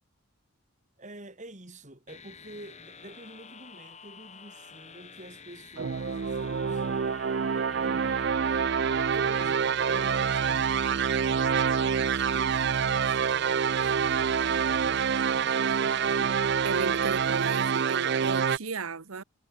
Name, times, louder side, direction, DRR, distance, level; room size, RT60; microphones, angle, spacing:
voice 1, 1.0-8.4 9.0-16.4, right 1 dB, 35° right, 3.9 m, -48 dB
sound 1, 2.1-12.5, left 6 dB, 30° left, 3.0 m, -49 dB
sound 2, 5.8-18.6, right 7 dB, 50° right, 0.4 m, -26 dB
voice 2, 16.6-19.2, right 4 dB, 80° right, 1.1 m, -34 dB
head